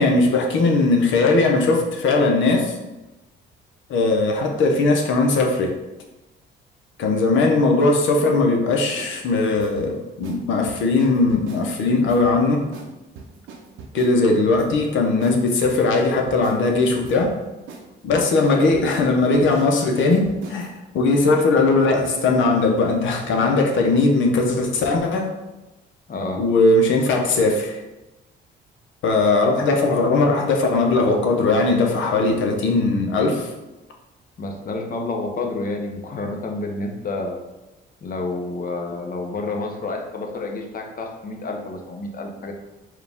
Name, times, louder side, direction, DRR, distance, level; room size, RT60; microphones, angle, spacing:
voice 1, 0.0-2.8 3.9-5.7 7.0-12.6 13.9-17.3 18.0-25.3 26.4-27.8 29.0-33.5, left 3 dB, 75° left, 2 dB, 0.8 m, -19 dB
sound 1, 9.0-9.1 9.6-9.9 10.2-10.4 10.7-11.7 12.1-12.4 12.7-12.9 13.2-14.1 14.5-14.9 15.2-15.4 15.6-16.6 17.0-17.4 17.7-17.8 18.1-20.8, right 4 dB, 80° right, 0.7 m, -40 dB
voice 2, 26.1-26.4 34.4-37.4 38.0-42.5, left 2 dB, 45° left, 2 dB, 0.8 m, -29 dB
4.6 x 2.4 x 3.5 m, 1.0 s
cardioid pair, 90°, 20 cm